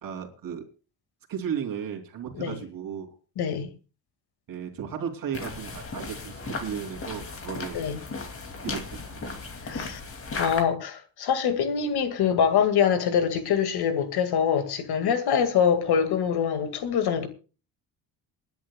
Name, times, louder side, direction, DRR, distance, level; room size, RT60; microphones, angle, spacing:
voice 1, 0.0-0.7 1.3-3.1 4.5-7.9 8.6-9.4, right 8 dB, 55° right, 3.0 m, -35 dB
voice 2, 3.4-3.7 7.7-8.0 9.7-10.0 10.4-17.3, left 7 dB, 65° left, 2.0 m, -24 dB
sound 1, 5.3-10.6, left 3 dB, 30° left, 2.4 m, -35 dB
28.0 x 10.5 x 2.3 m
cardioid pair, 135°, 41 cm